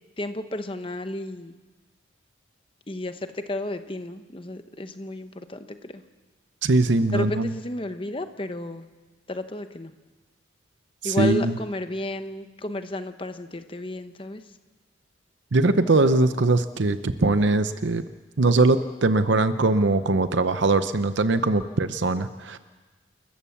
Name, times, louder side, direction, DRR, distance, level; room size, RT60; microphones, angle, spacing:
voice 1, 0.2-1.5 2.9-6.0 7.1-8.9 9.3-9.9 11.0-14.4, left 1 dB, 25° left, 9 dB, 0.9 m, -32 dB
voice 2, 6.6-7.5 11.0-11.5 15.5-18.0 18.4-22.6, right 2 dB, 65° right, 11 dB, 0.7 m, -21 dB
29.0 x 14.0 x 7.2 m, 1.3 s
head